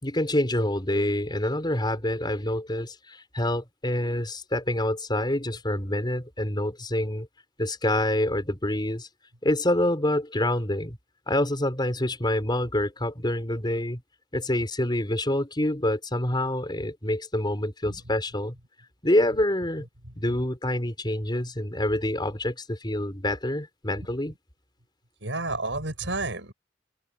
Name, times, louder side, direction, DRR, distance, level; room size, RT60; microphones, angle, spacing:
voice 1, 0.0-7.3 7.6-9.1 9.4-11.0 11.3-14.0 14.3-18.5 19.0-19.9 20.2-24.3, left 1 dB, 25° left, 4.8 m, -26 dB
voice 2, 25.2-26.5, right 2 dB, 85° right, 5.9 m, -31 dB
open air
head